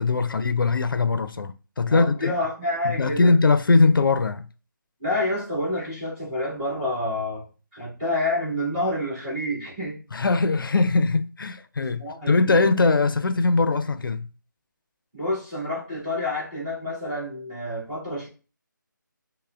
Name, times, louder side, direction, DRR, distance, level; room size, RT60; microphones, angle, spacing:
voice 1, 0.0-2.3 2.8-4.5 10.1-14.3, left 3 dB, 80° left, 0.5 m, -21 dB
voice 2, 1.8-3.3 5.0-7.4 7.7-10.0 11.8-12.6 15.1-18.3, left 1 dB, 15° right, 2.0 m, -28 dB
5.4 x 2.1 x 2.4 m
figure-of-eight pair, 165°, 11 cm